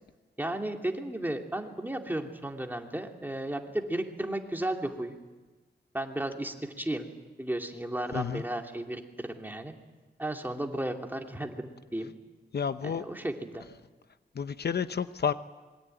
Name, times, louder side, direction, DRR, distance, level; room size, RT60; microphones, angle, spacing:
voice 1, 0.4-5.2 5.9-7.1 7.4-9.7 10.2-12.1 12.8-13.6, right 1 dB, 10° right, 2 dB, 2.8 m, -34 dB
voice 2, 8.1-8.4 12.5-13.0 14.3-15.3, left 7 dB, 70° left, 11 dB, 0.9 m, -30 dB
26.5 x 22.5 x 9.2 m, 1.2 s
wide cardioid pair, 110°, 18 cm